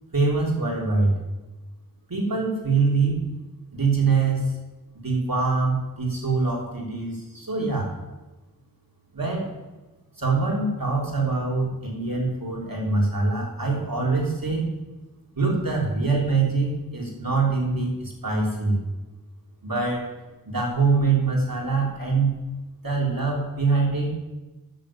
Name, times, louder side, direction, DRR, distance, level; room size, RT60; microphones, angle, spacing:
voice 1, 0.1-1.2 2.1-3.2 3.7-4.4 4.9-7.9 9.1-9.6 10.2-14.7 15.3-18.9 19.6-20.1 20.5-22.3 22.8-24.1, right 4 dB, 65° right, -2 dB, 3.3 m, -24 dB
10.0 x 6.8 x 8.8 m, 1.1 s
wide cardioid pair, 55°, 36 cm